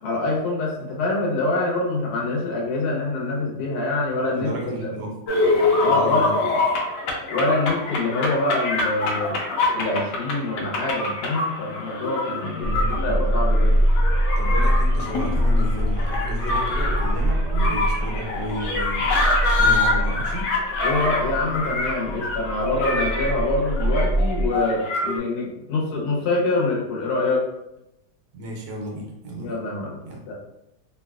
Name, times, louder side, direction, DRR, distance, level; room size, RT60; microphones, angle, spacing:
voice 1, 0.0-4.9 5.8-6.3 7.3-9.4 9.7-13.8 20.8-27.5 29.4-30.0 30.3-30.4, left 2 dB, 75° left, -2 dB, 1.2 m, -25 dB
voice 2, 4.3-5.2 5.9-6.4 12.6-13.4 14.4-20.5 28.3-29.6 30.0-30.2, right 1 dB, 80° right, -1 dB, 1.4 m, -33 dB
sound 1, 5.3-25.2, left 3 dB, 90° left, 1.3 m, -25 dB
sound 2, 12.6-24.5, equal, 65° right, 1.2 m, -23 dB
3.3 x 2.7 x 2.3 m, 0.86 s
omnidirectional pair, 1.8 m